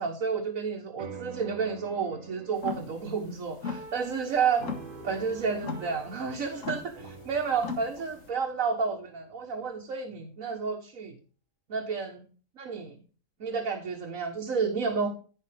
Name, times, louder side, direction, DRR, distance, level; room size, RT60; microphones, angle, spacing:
voice 1, 0.0-4.7 5.0-11.1 11.7-12.1 12.6-12.9 13.4-15.1, right 5 dB, 85° right, 2 dB, 1.6 m, -31 dB
sound 1, 1.0-9.7, right 4 dB, 45° right, 1.2 m, -47 dB
sound 2, 2.6-8.3, left 5 dB, 70° left, 1.6 m, -39 dB
sound 3, 4.3-4.4 5.2-5.3 6.1-6.2 7.0-7.1 8.0-8.1 8.9-9.0, left 1 dB, 25° right, 5.5 m, -50 dB
15.0 x 5.4 x 3.4 m, 0.39 s
omnidirectional pair, 1.4 m